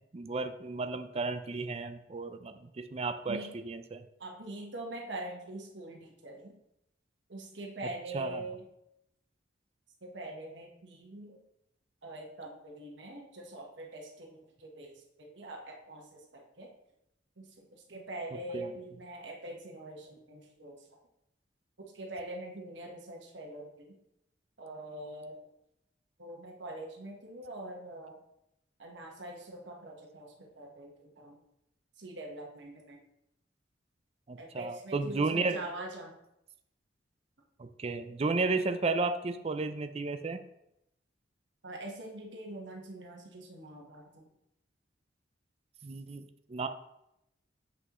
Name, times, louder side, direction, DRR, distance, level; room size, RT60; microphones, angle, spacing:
voice 1, 0.1-4.0 8.1-8.4 18.5-18.7 34.3-35.6 37.6-40.4 45.8-46.7, right 3 dB, 35° right, 8 dB, 0.4 m, -33 dB
voice 2, 4.2-6.6 7.3-8.7 10.0-11.4 12.0-16.7 17.4-20.9 21.9-24.0 24.6-25.4 26.2-28.2 28.8-31.4 32.0-33.0 34.4-36.1 41.6-44.2, right 1 dB, 80° right, 0 dB, 1.3 m, -44 dB
7.6 x 6.1 x 3.0 m, 0.83 s
head